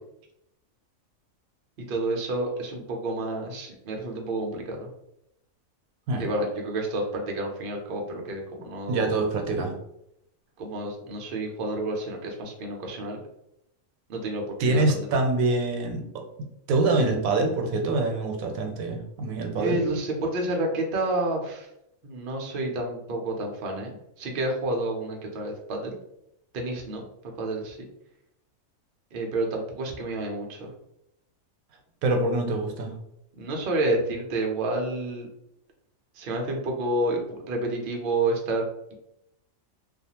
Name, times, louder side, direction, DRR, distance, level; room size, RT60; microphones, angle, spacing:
voice 1, 1.9-4.9 6.2-9.2 10.6-13.2 14.1-15.1 19.6-21.7 22.0-26.0 26.5-27.1 27.4-27.9 29.1-30.7 33.4-35.3 36.2-37.2 37.5-38.9, right 2 dB, 55° right, 1 dB, 0.6 m, -29 dB
voice 2, 8.9-9.7 14.6-16.2 16.7-19.8 32.0-32.9, right 2 dB, 90° right, 3 dB, 1.0 m, -25 dB
2.4 x 2.3 x 2.8 m, 0.80 s
omnidirectional pair, 1.4 m